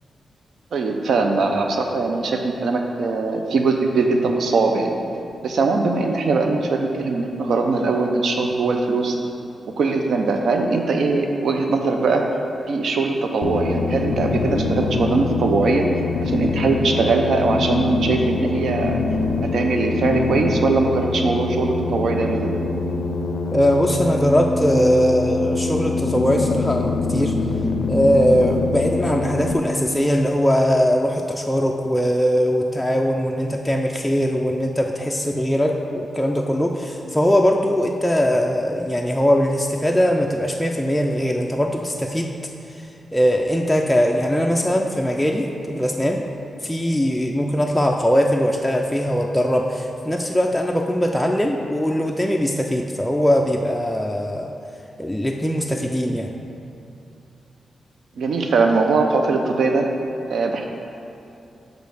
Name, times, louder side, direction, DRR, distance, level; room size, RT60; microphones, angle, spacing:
voice 1, 0.7-4.9 5.4-9.2 9.8-12.2 12.7-15.9 16.2-19.0 19.5-22.5 58.2-59.9 60.3-60.6, right 3 dB, 75° right, 3 dB, 0.5 m, -21 dB
sound 1, 13.4-29.5, left 3 dB, 80° left, 0.4 m, -24 dB
voice 2, 23.5-27.4 27.9-42.4 42.7-42.8 43.1-46.2 46.6-54.5 55.0-56.3, equal, 5° left, 0 dB, 0.3 m, -20 dB
5.2 x 4.5 x 6.2 m, 2.8 s
wide cardioid pair, 140°, 0 cm